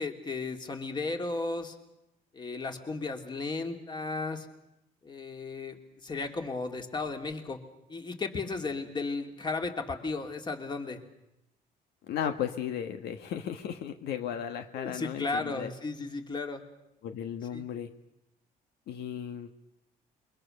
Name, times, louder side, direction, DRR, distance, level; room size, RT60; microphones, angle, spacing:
voice 1, 0.0-1.8 2.3-4.5 5.0-5.8 6.0-7.6 7.9-11.0 14.7-16.6 17.5-17.6, left 3 dB, 25° left, 4 dB, 3.0 m, -34 dB
voice 2, 12.1-15.7 17.0-17.9 18.9-19.6, left 9 dB, 75° left, 7 dB, 1.5 m, -35 dB
28.0 x 23.0 x 6.7 m, 0.88 s
cardioid pair, 110°, 17 cm